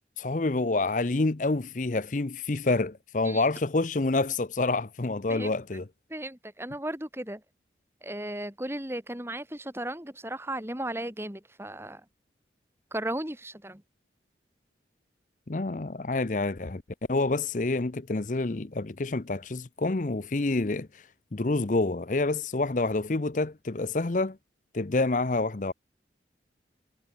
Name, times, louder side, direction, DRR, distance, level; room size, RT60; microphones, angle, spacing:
voice 1, 0.2-5.8 15.5-16.8 17.1-21.0 21.3-24.4 24.7-25.7, left 2 dB, 45° left, 0.7 m, -28 dB
voice 2, 5.3-5.8 6.1-7.4 8.0-12.1 12.9-13.8, right 1 dB, 15° right, 3.0 m, -36 dB
head